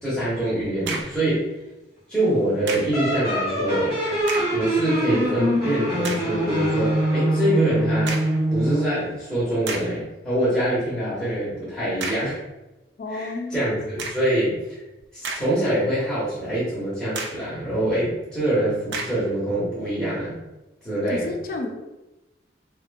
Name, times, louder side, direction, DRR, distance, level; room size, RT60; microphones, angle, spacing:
voice 1, 0.0-1.5 2.1-3.9 4.5-8.2 8.5-12.4 13.1-14.8 15.1-20.4 20.8-21.3, right 1 dB, ahead, -10 dB, 0.8 m, -25 dB
sound 1, 0.6-1.3 2.7-3.0 4.2-4.6 5.2-5.3 6.0-6.4 8.1-8.4 9.1-9.2 9.7-10.0 12.0-12.4 14.0-14.4 15.0-15.8 16.2-16.3 17.1-17.5 18.9-19.3, right 3 dB, 75° right, 0.3 m, -33 dB
sound 2, 2.9-9.0, right 1 dB, 50° right, 1.0 m, -23 dB
voice 2, 13.0-13.6 21.1-21.7, left 3 dB, 55° left, 3 dB, 0.4 m, -30 dB
2.5 x 2.1 x 2.5 m, 1.0 s
head